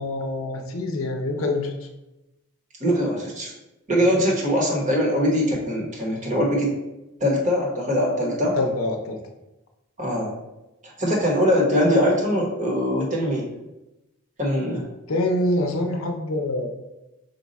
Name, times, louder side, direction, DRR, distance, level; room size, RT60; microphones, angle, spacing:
voice 1, 0.0-1.7 4.1-4.2 8.6-9.2 15.1-16.7, left 1 dB, 75° left, 3 dB, 0.6 m, -25 dB
voice 2, 2.8-3.5 3.9-6.8 7.2-8.6 10.0-10.3 10.8-13.5 14.4-14.9, equal, 35° right, -1 dB, 1.1 m, -22 dB
5.2 x 2.3 x 4.0 m, 0.97 s
head